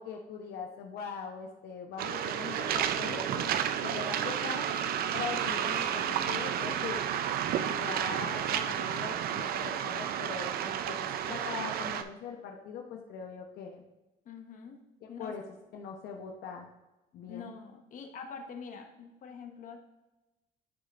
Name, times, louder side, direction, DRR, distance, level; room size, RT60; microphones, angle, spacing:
voice 1, 0.0-3.5 3.8-4.7 5.1-7.0 7.6-13.8 15.0-15.4 15.7-16.7 17.1-17.5, left 6 dB, 75° left, 2 dB, 0.9 m, -41 dB
Waves surf, 2.0-12.0, right 9 dB, 65° right, 0.5 m, -31 dB
voice 2, 14.2-14.8 15.1-15.3 17.3-19.8, left 6 dB, 50° left, 4 dB, 1.1 m, -45 dB
9.3 x 5.1 x 2.5 m, 1.0 s
cardioid pair, 110°, 17 cm